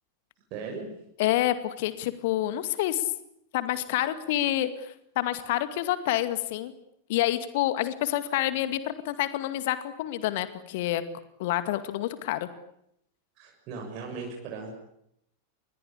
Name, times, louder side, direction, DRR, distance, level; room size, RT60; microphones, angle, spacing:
voice 1, 0.5-0.9 13.4-14.7, right 4 dB, 40° right, 0 dB, 6.7 m, -37 dB
voice 2, 1.2-3.1 3.5-6.7 7.1-11.0 11.4-12.5, left 14 dB, 50° left, 12 dB, 2.1 m, -28 dB
27.5 x 22.0 x 8.6 m, 0.77 s
figure-of-eight pair, 90°, 0 cm